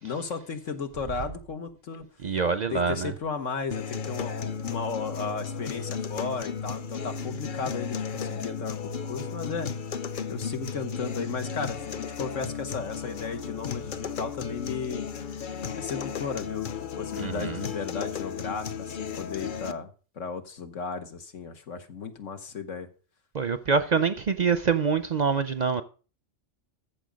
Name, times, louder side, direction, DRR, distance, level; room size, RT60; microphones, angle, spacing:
voice 1, 0.0-2.1 2.7-9.7 10.3-15.1 15.8-22.9, left 5 dB, 85° left, 1.8 m, -35 dB
voice 2, 2.2-3.1 17.2-17.6 23.3-25.8, right 5 dB, 50° right, 0.6 m, -25 dB
sound 1, 3.7-19.7, left 6 dB, 50° left, 0.8 m, -34 dB
14.0 x 7.1 x 5.1 m
omnidirectional pair, 1.3 m